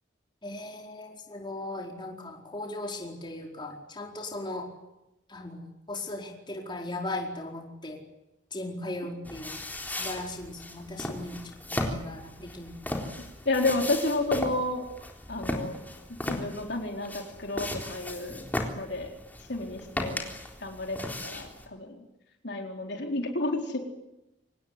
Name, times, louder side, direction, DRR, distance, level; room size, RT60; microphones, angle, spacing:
voice 1, 0.4-4.7 5.3-8.0 8.5-9.6 9.9-11.4 11.7-12.7, left 2 dB, 25° left, 1 dB, 4.6 m, -38 dB
sound 1, 9.3-21.7, left 1 dB, 10° left, 3.9 m, -36 dB
voice 2, 13.5-14.9 15.3-15.8 16.2-18.4 18.8-19.1 19.5-20.2 20.6-22.0 22.4-23.8, left 2 dB, 60° left, 2 dB, 4.2 m, -31 dB
26.0 x 19.5 x 9.7 m, 0.92 s
head